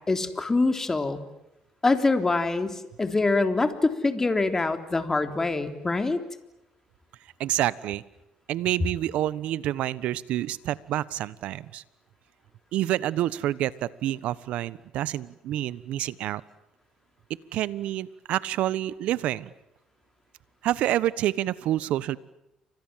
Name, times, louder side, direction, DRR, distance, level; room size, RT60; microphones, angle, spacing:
voice 1, 0.1-1.2 1.8-6.2, left 3 dB, 20° left, 8 dB, 3.6 m, -24 dB
voice 2, 7.4-8.0 8.5-11.8 12.7-16.4 17.5-19.5 20.6-22.2, right 13 dB, 75° right, 18 dB, 1.3 m, -28 dB
30.0 x 25.5 x 7.6 m, 0.88 s
cardioid pair, 90°, 2 cm